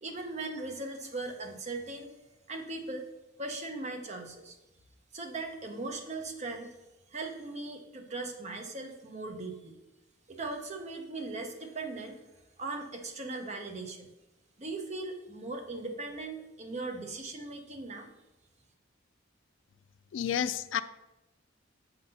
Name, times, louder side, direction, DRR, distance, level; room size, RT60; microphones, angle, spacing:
voice 1, 0.0-2.1 2.5-3.1 3.4-4.6 5.1-6.8 7.1-9.8 10.3-12.2 12.6-14.1 14.6-18.1, right 3 dB, 35° right, 4 dB, 0.8 m, -39 dB
voice 2, 20.1-20.8, left 9 dB, 65° left, 11 dB, 0.3 m, -30 dB
6.8 x 3.9 x 5.5 m, 0.96 s
head